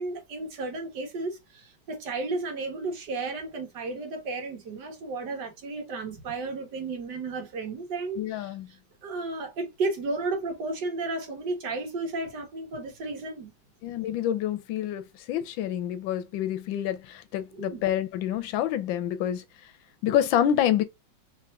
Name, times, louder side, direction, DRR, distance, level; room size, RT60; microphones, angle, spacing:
voice 1, 0.0-13.5 17.5-17.8, right 3 dB, 65° right, 1.7 m, -33 dB
voice 2, 8.2-8.7 13.8-19.4 20.0-20.8, left 10 dB, 90° left, 1.4 m, -27 dB
3.6 x 3.4 x 2.4 m
omnidirectional pair, 2.1 m